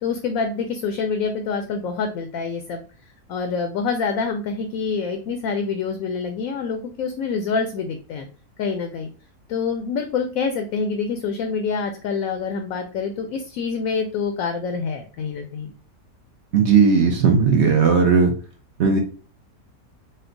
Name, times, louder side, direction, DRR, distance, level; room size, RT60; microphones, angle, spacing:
voice 1, 0.0-2.8 3.3-8.3 8.6-9.1 9.5-15.7, left 5 dB, 70° left, 6 dB, 0.9 m, -26 dB
voice 2, 16.5-18.3 18.8-19.0, right 5 dB, 60° right, 2 dB, 0.7 m, -16 dB
4.3 x 2.1 x 3.8 m, 0.37 s
omnidirectional pair, 1.6 m